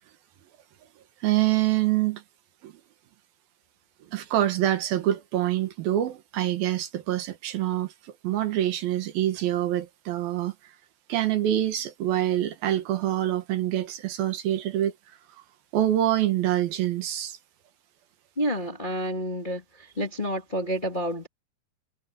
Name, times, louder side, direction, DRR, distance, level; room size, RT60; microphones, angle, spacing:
voice 1, 1.2-2.2 2.6-2.7 4.1-10.5 11.1-14.9 15.7-17.4, right 13 dB, 70° right, 3.0 m, -25 dB
voice 2, 18.4-19.6 20.0-21.3, equal, 20° left, 1.4 m, -29 dB
omnidirectional pair, 4.5 m